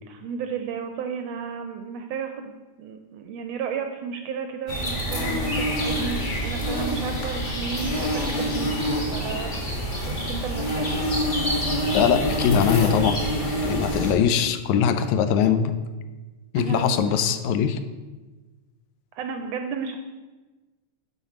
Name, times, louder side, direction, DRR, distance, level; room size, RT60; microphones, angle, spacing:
voice 1, 0.1-9.6 10.1-11.0 16.5-17.4 19.1-20.0, right 6 dB, 80° right, 6 dB, 1.5 m, -33 dB
sound 1, 4.7-14.1, equal, 30° left, 0.9 m, -26 dB
voice 2, 11.9-13.2 13.6-15.7 16.5-17.8, left 7 dB, 80° left, 9 dB, 2.0 m, -21 dB
10.0 x 4.3 x 7.2 m, 1.2 s
omnidirectional pair, 3.5 m